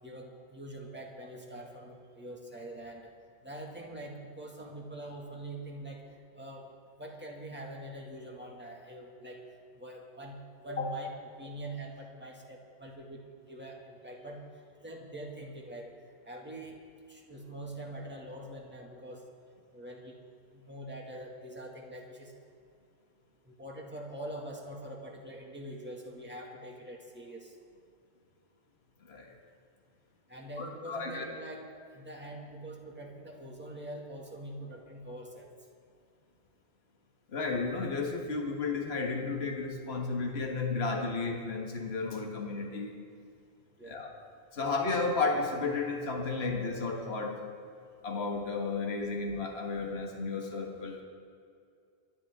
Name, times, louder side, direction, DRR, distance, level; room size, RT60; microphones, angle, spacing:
voice 1, 0.0-3.1 3.4-6.0 6.3-6.7 7.0-9.4 9.7-14.5 14.8-15.9 16.3-16.8 17.1-19.2 19.7-20.2 20.5-22.3 23.4-27.5 30.3-31.6 31.9-35.5 43.8-44.0, right 1 dB, 10° right, -1 dB, 1.9 m, -44 dB
voice 2, 30.6-31.3 37.3-42.9 43.9-44.1 44.5-47.4 48.0-51.0, left 3 dB, 55° left, 1 dB, 1.7 m, -33 dB
24.5 x 11.0 x 3.6 m, 2.4 s
omnidirectional pair, 1.3 m